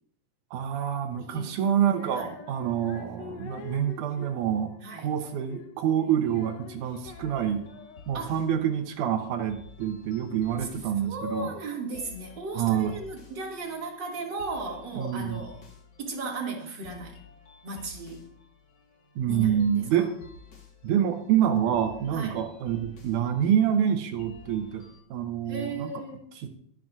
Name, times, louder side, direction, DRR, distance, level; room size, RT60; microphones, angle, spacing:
voice 1, 0.5-4.7 5.0-7.7 8.1-11.6 12.5-12.9 14.9-15.5 19.2-20.1 20.8-24.8 25.1-25.9 26.4-26.5, right 9 dB, 75° right, 7 dB, 2.2 m, -27 dB
voice 2, 1.0-1.6 2.1-2.4 4.8-5.1 8.1-8.4 10.6-10.7 11.0-15.6 16.0-17.2 17.6-18.3 19.3-19.8 22.1-22.4 25.5-26.3, right 2 dB, 40° right, -1 dB, 2.4 m, -36 dB
Female singing, 1.8-8.3, left 6 dB, 65° left, 1.9 m, -46 dB
sound 1, 7.0-25.0, left 4 dB, 40° left, 1.7 m, -52 dB
23.0 x 7.6 x 2.5 m, 0.67 s
omnidirectional pair, 3.8 m